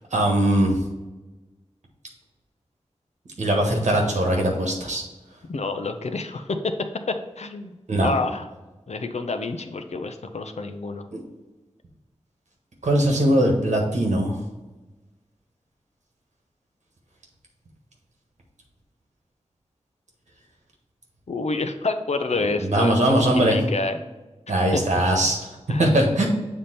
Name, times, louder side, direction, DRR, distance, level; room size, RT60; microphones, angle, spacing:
voice 1, 0.1-0.7 3.4-5.0 7.9-8.1 11.1-11.2 12.8-14.3 22.7-23.6 24.5-25.4 25.8-26.3, right 1 dB, 90° right, 0 dB, 1.4 m, -20 dB
voice 2, 5.5-6.7 7.1-8.5 8.9-11.1 21.3-24.0 24.7-24.8 25.7-25.9, left 3 dB, 70° left, 7 dB, 0.6 m, -28 dB
7.3 x 3.5 x 4.2 m, 1.1 s
wide cardioid pair, 55°, 12 cm